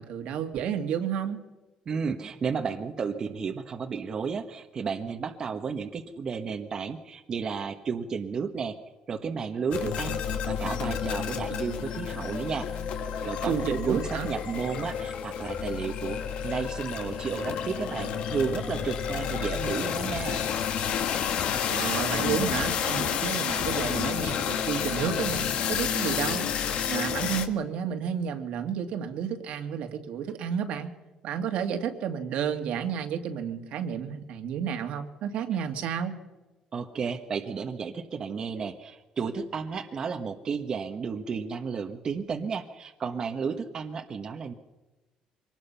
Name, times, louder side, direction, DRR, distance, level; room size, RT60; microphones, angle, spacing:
voice 1, 0.0-1.4 13.5-14.3 21.7-26.5 26.8-30.9 31.2-36.2, right 8 dB, 70° right, 5 dB, 2.3 m, -31 dB
voice 2, 1.9-8.8 9.1-10.2 10.5-12.7 13.2-20.4 36.7-44.5, right 5 dB, 35° right, 4 dB, 1.4 m, -32 dB
sound 1, 9.7-27.5, left 8 dB, 65° left, 1.8 m, -30 dB
24.5 x 19.5 x 5.7 m, 1.1 s
cardioid pair, 135°, 2 cm